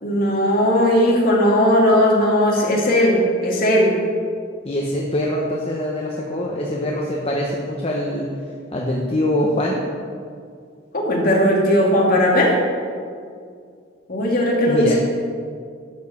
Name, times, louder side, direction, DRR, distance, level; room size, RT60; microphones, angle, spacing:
voice 1, 0.0-3.9 10.9-12.5 14.1-14.9, equal, 45° left, -2 dB, 2.2 m, -17 dB
voice 2, 4.6-8.3 8.7-9.8 14.7-14.9, left 1 dB, 30° left, -2 dB, 0.9 m, -23 dB
12.0 x 5.0 x 6.9 m, 2.2 s
head